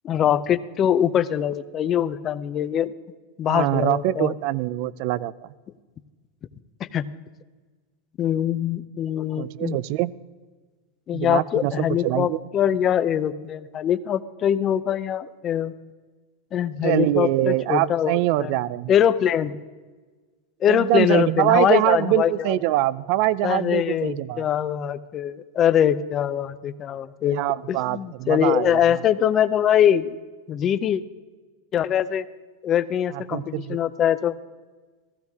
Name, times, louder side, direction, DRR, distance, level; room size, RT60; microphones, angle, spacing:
voice 1, 0.0-2.9 3.4-4.3 6.8-7.1 8.2-9.8 11.1-15.7 16.5-18.5 18.9-19.6 20.6-22.6 23.4-27.4 27.7-30.1 30.5-31.0 31.7-32.3 32.6-34.4, left 9 dB, 30° left, 13 dB, 0.6 m, -23 dB
voice 2, 3.4-5.5 9.4-10.1 11.1-12.4 16.8-18.9 20.7-24.5 27.3-29.0 33.1-33.8, right 16 dB, 55° right, 19 dB, 0.4 m, -24 dB
15.5 x 15.0 x 3.6 m, 1.3 s
supercardioid pair, 135°, 0 cm